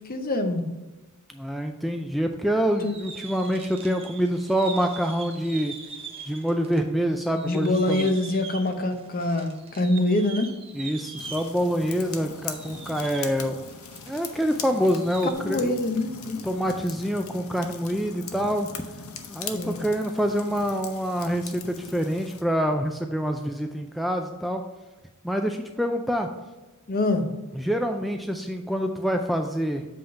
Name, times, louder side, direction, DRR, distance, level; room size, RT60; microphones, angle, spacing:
voice 1, 0.0-0.6 2.8-3.0 7.3-10.5 15.4-16.5 19.5-19.8 26.9-27.2, left 2 dB, 40° left, 6 dB, 0.8 m, -25 dB
voice 2, 1.3-5.7 6.3-8.1 10.7-13.7 14.1-15.7 16.4-18.7 19.3-24.6 25.2-26.3 27.5-29.9, equal, ahead, 4 dB, 0.4 m, -26 dB
sound 1, 2.6-6.8 7.1-14.4 14.7-15.3, right 5 dB, 25° right, 0.9 m, -42 dB
sound 2, 11.2-22.4, left 6 dB, 75° left, 0.8 m, -40 dB
7.7 x 3.6 x 5.6 m, 1.2 s
head